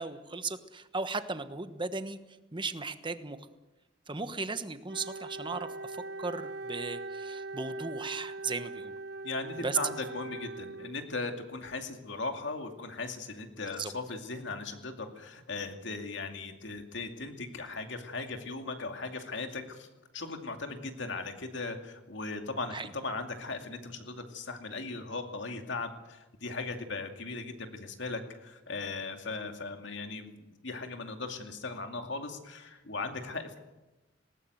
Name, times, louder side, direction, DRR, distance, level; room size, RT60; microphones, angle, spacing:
voice 1, 0.0-2.2 2.5-3.4 4.1-8.9 9.6-9.9 13.8-13.9 22.7-22.9, right 4 dB, 25° right, 10 dB, 1.2 m, -36 dB
Wind instrument woodwind instrument, 4.9-11.2, right 3 dB, 60° right, 1.2 m, -41 dB
voice 2, 9.2-19.9 20.1-22.8 23.0-33.6, left 3 dB, 65° left, 5 dB, 2.4 m, -38 dB
19.5 x 18.5 x 7.9 m, 1.1 s
head